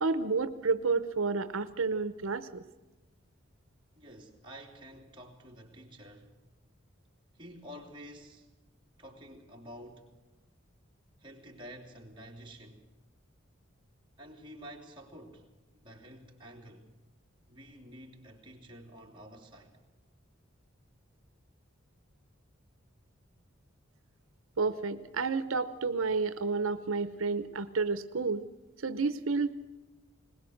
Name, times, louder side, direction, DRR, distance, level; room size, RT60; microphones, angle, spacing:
voice 1, 0.0-2.6 24.6-28.4 28.8-29.5, right 4 dB, 85° right, 0.9 m, -30 dB
voice 2, 3.9-6.4 7.3-8.5 9.0-10.1 11.2-12.9 14.2-15.5 15.8-16.9 17.5-19.8, equal, 25° right, 3.2 m, -50 dB
21.5 x 20.0 x 6.5 m
head